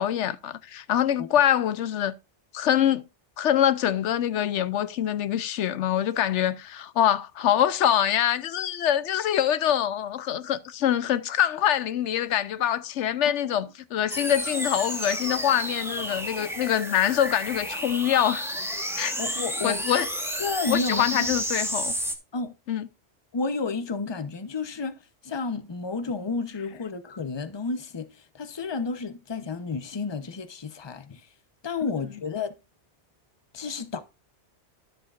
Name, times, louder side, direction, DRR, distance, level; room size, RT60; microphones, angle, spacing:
voice 1, 0.0-2.2 2.5-3.0 3.4-18.5 19.0-19.2 19.6-20.1 20.7-21.9 22.7-22.9, left 10 dB, 85° left, 1.0 m, -24 dB
sound 1, 14.1-22.1, equal, ahead, 1.4 m, -31 dB
voice 2, 19.2-19.8 20.4-21.3 22.3-22.5 23.3-25.0 25.2-28.1 28.3-31.2 31.6-32.5 33.5-34.0, left 4 dB, 25° left, 0.8 m, -31 dB
12.0 x 7.9 x 2.5 m
omnidirectional pair, 1.2 m